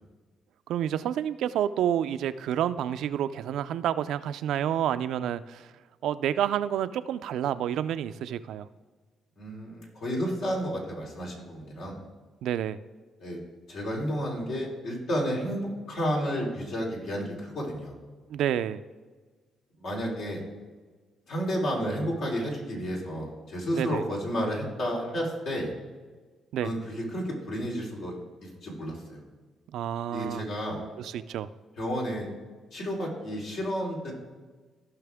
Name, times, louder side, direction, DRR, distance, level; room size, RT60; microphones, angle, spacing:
voice 1, 0.7-5.7 6.0-8.7 12.4-12.8 18.3-18.8 23.7-24.0 26.5-26.7 29.7-30.5 31.0-31.5, right 10 dB, 80° right, 12 dB, 0.4 m, -29 dB
voice 2, 9.4-12.0 13.2-13.4 13.7-17.9 19.8-20.4 21.3-25.7 26.6-28.1 28.4-29.2 30.1-30.8 31.8-32.3 32.7-34.1, equal, 75° left, -3 dB, 3.4 m, -31 dB
16.0 x 5.8 x 3.5 m, 1.4 s
cardioid pair, 90°, 0 cm